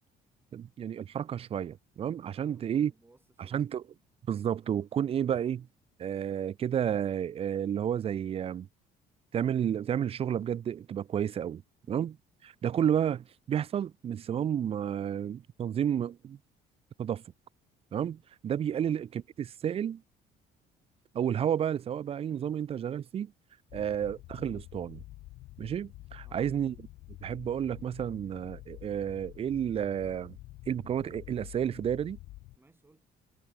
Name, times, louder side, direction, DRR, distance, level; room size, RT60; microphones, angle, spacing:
voice 1, 0.5-2.9 3.5-3.8 4.3-5.7 6.0-8.7 9.3-11.6 11.9-12.1 12.6-16.4 17.0-17.2 17.9-20.0 21.1-23.3 23.7-25.0 25.6-26.7 27.2-30.4 30.7-32.2, right 9 dB, 35° right, 0.4 m, -31 dB
voice 2, 2.3-3.7 11.8-12.1 18.8-18.9 26.2-26.5 32.6-33.1, right 2 dB, 15° right, 3.8 m, -63 dB
sound 1, 23.7-32.6, left 18 dB, 85° left, 1.8 m, -48 dB
cardioid pair, 110°, 17 cm